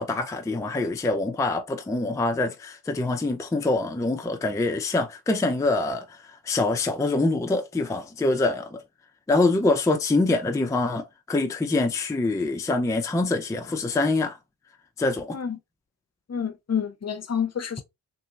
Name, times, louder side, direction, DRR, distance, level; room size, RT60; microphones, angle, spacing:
voice 1, 0.0-8.8 9.3-14.4 15.0-15.4, left 2 dB, 10° left, 0.5 m, -25 dB
voice 2, 16.3-17.8, left 7 dB, 35° left, 0.8 m, -28 dB
3.0 x 2.7 x 2.4 m
supercardioid pair, 50°, 43 cm